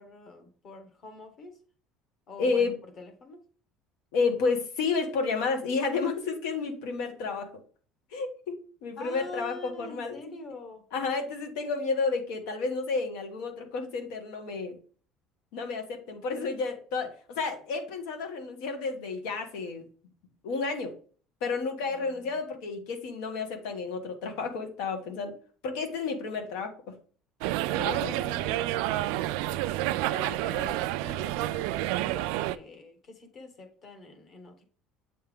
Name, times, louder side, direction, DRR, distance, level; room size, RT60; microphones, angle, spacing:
voice 1, 0.0-1.6 2.3-3.5 9.0-10.9 21.8-22.3 27.7-29.7 30.1-34.6, left 2 dB, 30° left, 1.1 m, -45 dB
voice 2, 2.4-2.7 4.1-7.5 8.1-10.2 10.9-14.8 15.5-19.8 20.4-20.9 21.4-25.3 25.6-26.7 27.8-28.1, left 4 dB, 80° left, 1.4 m, -31 dB
sound 1, 27.4-32.6, right 15 dB, 85° right, 0.3 m, -29 dB
8.1 x 3.3 x 3.5 m
cardioid pair, 175°, 0 cm